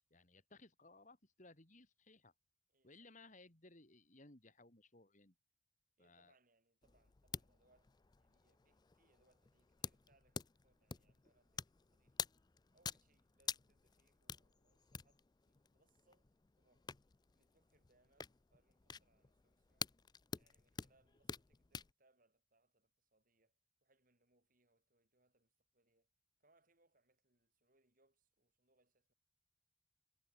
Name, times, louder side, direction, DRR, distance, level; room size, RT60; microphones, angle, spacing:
voice 1, 0.1-2.3 2.8-5.4 6.0-6.3, left 2 dB, 40° left, 3.5 m, -62 dB
voice 2, 2.7-3.3 6.0-12.3 12.7-16.3 16.6-16.9 17.3-20.0 20.4-26.1 26.4-29.1, right 2 dB, 45° right, 7.6 m, -78 dB
sound 1, 6.8-21.9, left 6 dB, 20° left, 0.4 m, -50 dB
head